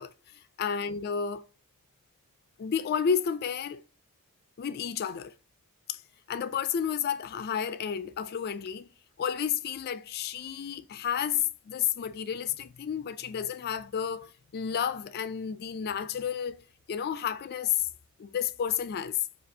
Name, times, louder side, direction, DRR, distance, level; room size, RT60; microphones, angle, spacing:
voice 1, 0.0-1.5 2.6-3.8 4.6-5.3 5.9-6.0 6.3-8.9 9.2-16.6 16.9-17.9 18.2-19.2, left 8 dB, 45° left, 0.3 m, -31 dB
5.1 x 2.4 x 2.6 m
head